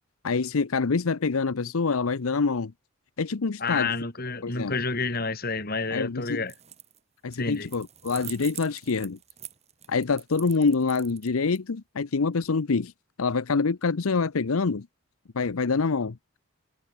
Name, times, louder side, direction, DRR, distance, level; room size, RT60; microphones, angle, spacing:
voice 1, 0.2-2.7 3.2-4.0 4.4-4.8 5.9-6.5 7.2-9.2 9.9-12.9 13.2-14.9 15.3-16.2, left 4 dB, 80° left, 0.7 m, -26 dB
voice 2, 3.6-6.5 7.4-7.7, left 4 dB, 45° left, 3.2 m, -29 dB
sound 1, 6.4-7.0 7.3-11.6, right 11 dB, 30° right, 7.0 m, -43 dB
head